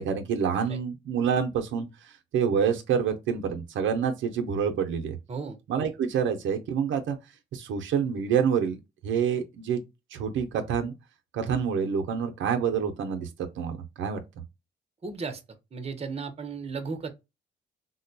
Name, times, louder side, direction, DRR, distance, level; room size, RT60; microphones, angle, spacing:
voice 1, 0.0-5.2 5.7-7.2 7.5-8.8 9.0-9.8 10.1-10.9 11.3-13.3 13.6-14.2, right 7 dB, 75° right, 0.6 m, -27 dB
voice 2, 15.0-15.4 15.7-17.1, right 4 dB, 30° right, 0.7 m, -35 dB
3.7 x 2.2 x 2.6 m
cardioid pair, 90°, 20 cm